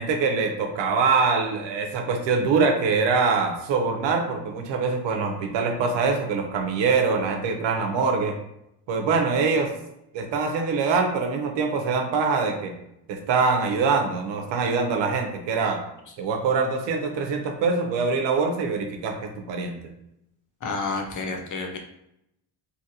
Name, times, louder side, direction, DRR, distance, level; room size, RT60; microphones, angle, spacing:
voice 1, 0.0-8.4 8.9-9.7 10.1-12.7 13.1-15.8 16.2-19.8, right 4 dB, 75° right, 4 dB, 0.7 m, -24 dB
voice 2, 20.6-21.8, left 3 dB, 45° left, 3 dB, 0.7 m, -30 dB
2.8 x 2.5 x 2.7 m, 0.81 s
supercardioid pair, 75°, 44 cm